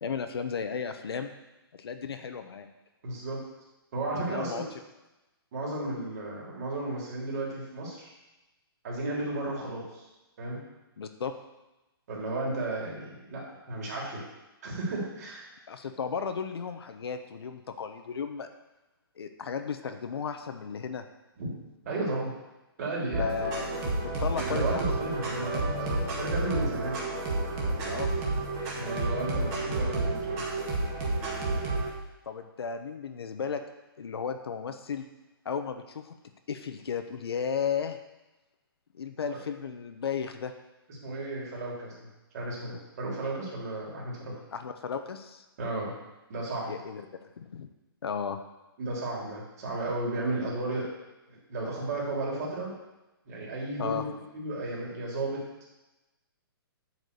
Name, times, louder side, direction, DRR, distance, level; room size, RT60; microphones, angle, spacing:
voice 1, 0.0-1.3 1.8-2.7 4.2-4.6 11.0-11.3 15.7-18.5 19.2-21.0 23.2-24.8 27.8-28.1 32.3-33.6 34.0-35.0 35.4-36.1 36.5-38.0 38.9-40.5 44.5-45.4 46.7-47.7 48.0-48.4 53.8-54.0, left 6 dB, 75° left, 7 dB, 0.9 m, -34 dB
voice 2, 3.0-3.4 3.9-4.6 5.5-8.1 8.8-10.0 10.4-10.6 12.1-14.2 14.6-15.5 21.4-21.5 21.8-22.3 22.8-23.5 24.4-27.0 28.7-30.4 39.3-39.4 41.0-42.1 42.3-44.3 45.6-45.9 46.3-46.7 48.8-50.9 51.3-52.7 53.3-54.1 54.3-55.4, right 2 dB, 40° right, -4 dB, 3.3 m, -33 dB
sound 1, 23.1-31.9, right 2 dB, 20° right, 1.6 m, -30 dB
8.4 x 4.8 x 6.8 m, 1.0 s
hypercardioid pair, 165°, 13 cm